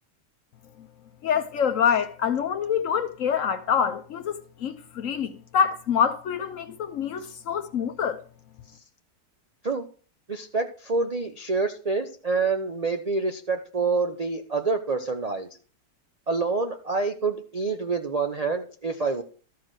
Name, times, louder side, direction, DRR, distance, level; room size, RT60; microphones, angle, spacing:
voice 1, 1.2-8.2, left 7 dB, 60° left, 0.9 m, -26 dB
voice 2, 10.3-15.5 16.3-19.2, right 4 dB, 60° right, 0.4 m, -27 dB
13.0 x 4.8 x 6.3 m
omnidirectional pair, 1.8 m